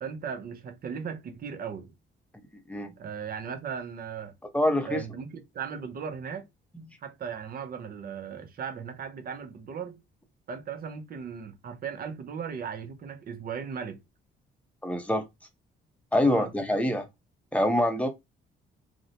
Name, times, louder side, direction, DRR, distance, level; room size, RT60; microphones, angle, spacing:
voice 1, 0.0-1.9 3.0-4.3 4.8-6.5 7.0-10.0 10.5-14.0 16.2-16.5, right 7 dB, 50° right, 0.6 m, -37 dB
voice 2, 4.5-5.0 6.7-6.8 14.8-15.3 16.1-17.1 17.5-18.1, left 1 dB, 5° left, 0.6 m, -25 dB
2.6 x 2.1 x 2.7 m
cardioid pair, 90°, 20 cm